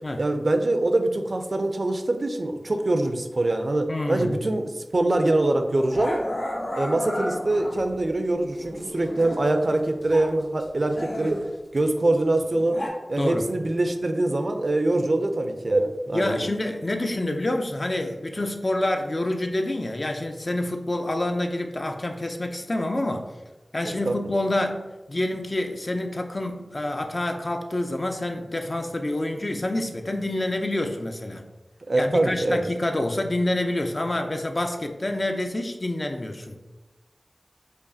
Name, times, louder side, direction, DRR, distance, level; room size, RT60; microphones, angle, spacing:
voice 1, 0.2-6.2 6.7-11.4 11.7-12.8 13.1-16.5 24.1-24.2 31.9-32.6, right 2 dB, 60° right, 6 dB, 0.4 m, -24 dB
voice 2, 3.9-4.4 13.2-13.5 16.1-23.3 23.7-31.5 31.9-36.6, left 1 dB, 45° left, 4 dB, 0.4 m, -27 dB
Growling, 5.0-5.2 5.9-8.0 8.6-10.4 10.6-12.9, left 1 dB, 80° left, 0.8 m, -34 dB
4.9 x 2.4 x 2.7 m, 1.1 s
cardioid pair, 40°, 0 cm